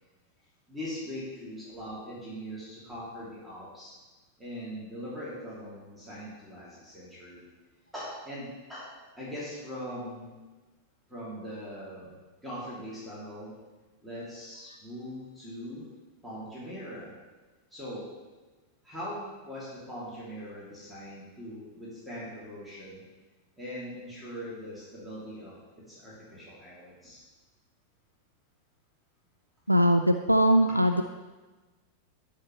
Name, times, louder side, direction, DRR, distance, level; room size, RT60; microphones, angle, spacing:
voice 1, 0.7-3.9 4.4-7.5 7.9-8.9 9.2-10.3 11.1-13.5 14.0-15.8 16.2-17.1 17.7-18.1 18.8-23.0 23.6-25.5 25.9-27.2, equal, 5° right, -9 dB, 2.9 m, -41 dB
voice 2, 29.7-31.0, equal, 85° right, 7 dB, 0.3 m, -21 dB
13.0 x 5.7 x 3.3 m, 1.2 s
figure-of-eight pair, 90°, 0 cm